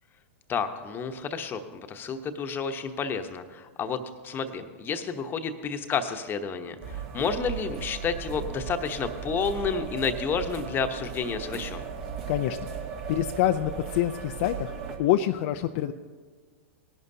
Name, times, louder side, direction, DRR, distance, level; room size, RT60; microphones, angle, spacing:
voice 1, 0.5-11.8, left 5 dB, 25° left, 8 dB, 1.0 m, -30 dB
sound 1, 6.8-15.0, right 6 dB, 60° right, 2.2 m, -37 dB
voice 2, 12.3-12.6 13.1-15.9, left 12 dB, 55° left, 7 dB, 0.5 m, -26 dB
19.5 x 11.0 x 2.8 m, 1.5 s
hypercardioid pair, 105°, 8 cm